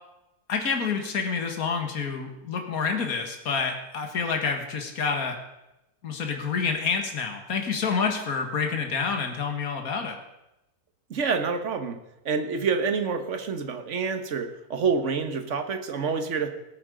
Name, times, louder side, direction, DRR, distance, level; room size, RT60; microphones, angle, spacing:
voice 1, 0.5-5.4 6.0-10.2, left 5 dB, 70° left, 4 dB, 2.1 m, -28 dB
voice 2, 11.1-12.0 12.2-16.5, right 5 dB, 55° right, 8 dB, 1.5 m, -27 dB
19.5 x 8.8 x 5.0 m, 0.92 s
omnidirectional pair, 1.6 m